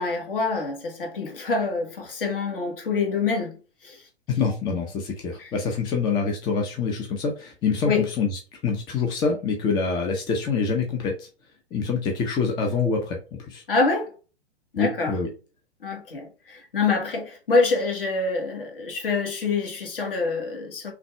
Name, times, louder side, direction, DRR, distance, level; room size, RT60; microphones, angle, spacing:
voice 1, 0.0-4.1 5.4-5.5 7.8-8.1 13.7-14.1 14.7-15.2 15.8-20.9, left 4 dB, 55° left, 1.6 m, -26 dB
voice 2, 4.3-11.3 11.7-13.6 14.8-15.3, left 5 dB, 15° left, 0.5 m, -26 dB
5.8 x 2.4 x 3.2 m
figure-of-eight pair, 110°, 32 cm